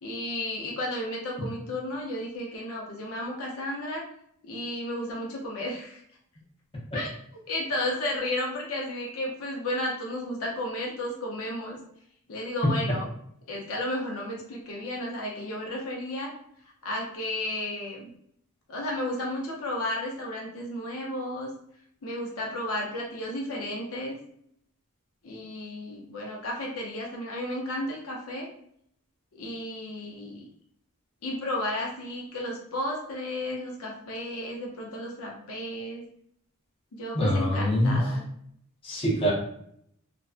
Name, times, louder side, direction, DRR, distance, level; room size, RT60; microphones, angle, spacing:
voice 1, 0.0-4.0 4.4-6.0 6.9-7.1 7.5-11.8 12.3-13.1 13.5-16.3 16.8-18.1 18.7-21.5 22.0-24.2 25.2-28.5 29.4-30.5 31.2-36.0 36.9-38.2, left 1 dB, 75° left, -1 dB, 0.6 m, -33 dB
voice 2, 37.1-38.0 38.8-39.3, equal, 25° left, -5 dB, 0.7 m, -24 dB
2.5 x 2.2 x 2.4 m, 0.68 s
head